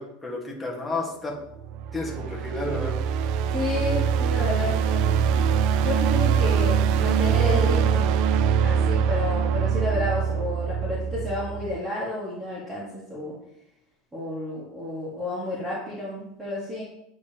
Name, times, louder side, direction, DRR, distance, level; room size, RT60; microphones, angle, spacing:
voice 1, 0.0-1.3 1.9-3.0, left 2 dB, 5° left, -3 dB, 1.6 m, -31 dB
sound 1, 1.6-11.8, right 7 dB, 50° right, 0.4 m, -23 dB
voice 2, 3.5-5.4 5.8-8.1 8.6-13.3 14.1-16.8, left 1 dB, 10° right, -7 dB, 1.7 m, -31 dB
9.2 x 5.1 x 2.9 m, 0.82 s
supercardioid pair, 155°, 0 cm